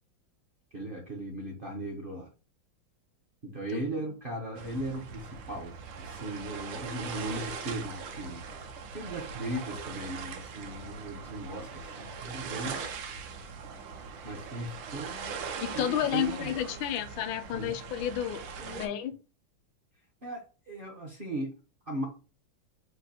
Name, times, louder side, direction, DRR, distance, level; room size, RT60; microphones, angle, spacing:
voice 1, 0.7-2.3 3.4-8.4 8.9-12.8 14.2-15.4 15.7-16.9 17.5-17.8 18.6-18.9 20.2-21.5 21.9-22.1, right 1 dB, 50° right, 0.6 m, -38 dB
sound 1, 4.5-18.9, right 5 dB, 75° right, 1.4 m, -41 dB
voice 2, 15.6-19.2, left 10 dB, 80° left, 1.3 m, -31 dB
3.8 x 2.7 x 4.1 m
omnidirectional pair, 2.1 m